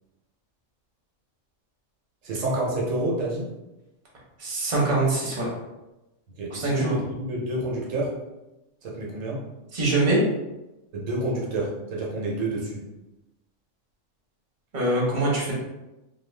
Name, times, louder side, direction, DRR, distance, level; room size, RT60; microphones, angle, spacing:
voice 1, 2.2-3.5 6.3-8.2 8.8-9.5 10.9-12.8, right 1 dB, 80° right, -3 dB, 1.1 m, -29 dB
voice 2, 4.4-5.5 6.5-6.9 9.7-10.2 14.7-15.5, right 2 dB, 40° right, -4 dB, 0.9 m, -23 dB
2.4 x 2.3 x 3.1 m, 0.99 s
omnidirectional pair, 1.3 m